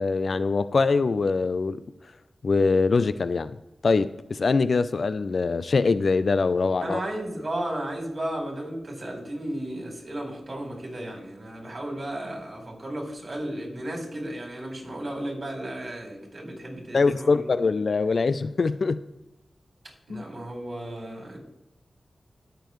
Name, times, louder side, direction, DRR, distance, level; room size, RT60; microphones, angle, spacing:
voice 1, 0.0-1.8 2.4-3.5 3.8-7.0 16.9-19.0 20.1-20.2, left 4 dB, 70° left, 15 dB, 0.4 m, -23 dB
voice 2, 6.8-17.4 20.1-21.4, right 1 dB, 45° right, 1 dB, 3.8 m, -34 dB
16.5 x 6.9 x 3.1 m, 0.87 s
cardioid pair, 50°, 0 cm